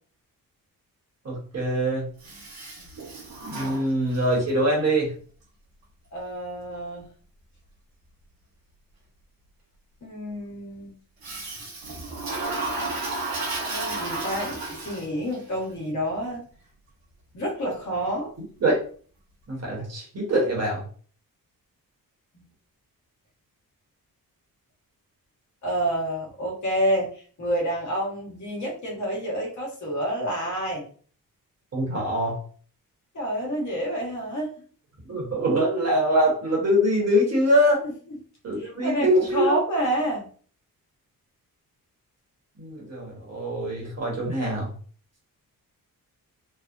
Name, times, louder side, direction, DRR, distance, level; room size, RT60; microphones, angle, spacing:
voice 1, 1.2-2.0 3.4-5.1 18.6-18.8 19.5-20.8 31.7-32.4 35.1-37.8 38.4-39.6 42.6-44.7, equal, 45° right, -2 dB, 1.2 m, -23 dB
Toilet flush, 2.2-4.4 11.2-15.3, right 2 dB, 75° right, 1.0 m, -33 dB
voice 2, 6.1-7.0 10.0-10.9 13.7-16.4 17.3-18.3 22.3-22.4 25.6-30.8 33.1-34.5 38.6-40.2, equal, 55° left, -2 dB, 1.2 m, -28 dB
3.2 x 2.0 x 2.5 m, 0.43 s
wide cardioid pair, 135°, 35 cm